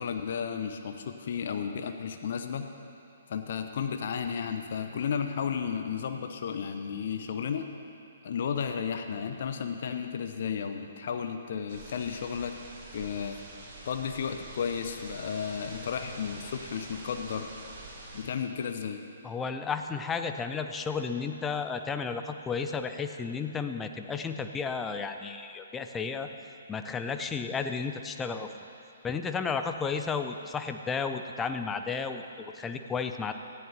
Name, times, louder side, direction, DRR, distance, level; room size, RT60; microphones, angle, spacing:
voice 1, 0.0-2.7 3.3-7.7 8.2-12.6 12.9-13.4 13.8-17.5 18.1-19.0, left 7 dB, 50° left, 6 dB, 0.8 m, -33 dB
sound 1, 11.7-18.3, right 2 dB, 35° right, 3.4 m, -46 dB
voice 2, 19.2-26.3 26.7-28.5 29.0-32.2 32.5-33.3, left 5 dB, 10° left, 7 dB, 0.6 m, -33 dB
18.0 x 14.5 x 2.9 m, 2.9 s
figure-of-eight pair, 125°, 0 cm